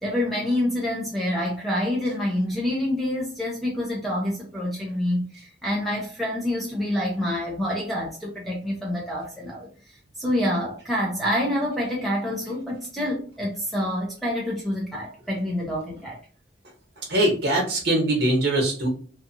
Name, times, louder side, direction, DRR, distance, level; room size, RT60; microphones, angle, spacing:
voice 1, 0.0-16.2, left 1 dB, ahead, 0.5 m, -27 dB
voice 2, 17.1-18.9, right 1 dB, 60° right, 1.1 m, -22 dB
2.7 x 2.4 x 2.6 m
head